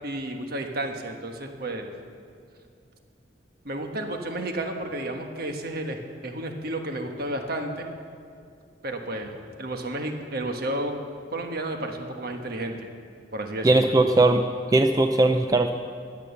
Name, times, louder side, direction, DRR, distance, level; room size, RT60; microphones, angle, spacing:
voice 1, 0.0-1.9 3.6-6.0 6.2-7.9 8.8-9.3 9.6-10.9 11.3-12.8 13.3-13.9, right 1 dB, 55° right, 4 dB, 1.3 m, -31 dB
voice 2, 13.6-14.4 14.7-15.7, right 2 dB, 20° right, 6 dB, 0.5 m, -19 dB
16.0 x 11.0 x 7.1 m, 2.3 s
head